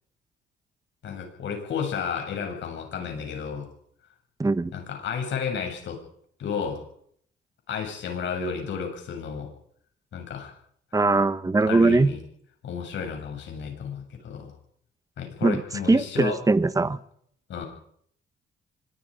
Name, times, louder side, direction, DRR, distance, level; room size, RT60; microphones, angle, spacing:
voice 1, 1.0-3.7 4.7-6.0 6.4-6.8 7.7-9.5 10.1-10.5 11.7-12.2 12.6-14.5 15.2-16.4 17.5-17.7, left 6 dB, 70° left, 7.5 m, -32 dB
voice 2, 4.4-4.7 10.9-12.1 15.4-15.6 15.9-17.0, right 3 dB, 15° right, 1.2 m, -21 dB
25.0 x 21.0 x 5.2 m
cardioid pair, 90°, 20 cm